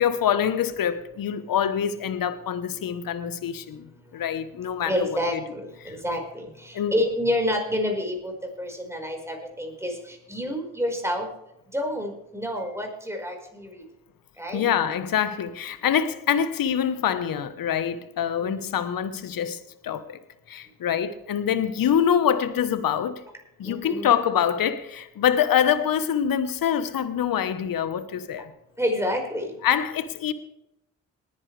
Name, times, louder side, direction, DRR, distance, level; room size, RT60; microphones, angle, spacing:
voice 1, 0.0-5.4 5.8-6.0 6.7-6.9 14.5-20.2 20.5-23.2 23.6-28.5 29.6-30.3, left 9 dB, 60° left, 1.2 m, -25 dB
voice 2, 4.8-8.3 8.6-11.3 11.7-13.8 14.4-14.7 18.4-18.7 23.6-24.1 28.8-29.5, left 1 dB, 5° right, 5.0 m, -28 dB
20.0 x 10.0 x 3.4 m
hypercardioid pair, 45°, 38 cm